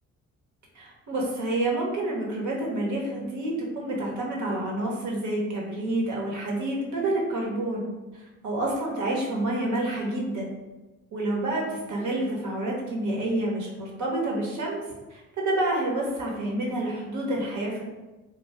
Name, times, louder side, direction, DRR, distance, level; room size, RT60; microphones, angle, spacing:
voice 1, 0.7-7.9 8.1-10.5 11.1-14.8 15.1-17.8, right 1 dB, 70° right, -2 dB, 1.1 m, -28 dB
3.3 x 2.3 x 3.4 m, 1.1 s
cardioid pair, 90°, 30 cm